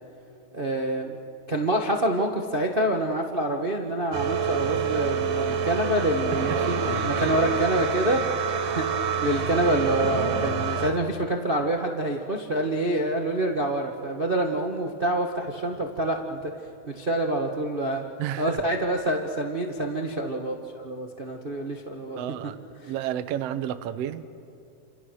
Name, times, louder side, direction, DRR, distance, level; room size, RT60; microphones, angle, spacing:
voice 1, 0.5-1.2 1.5-8.2 8.6-16.5 16.9-18.0 18.4-22.2, right 1 dB, 50° right, 2 dB, 0.6 m, -27 dB
sound 1, 4.1-10.9, right 6 dB, 90° right, 3.4 m, -27 dB
voice 2, 18.2-18.6 22.2-22.6 22.9-24.3, right 11 dB, 65° right, 10 dB, 1.8 m, -31 dB
29.5 x 27.5 x 6.4 m, 2.6 s
omnidirectional pair, 3.5 m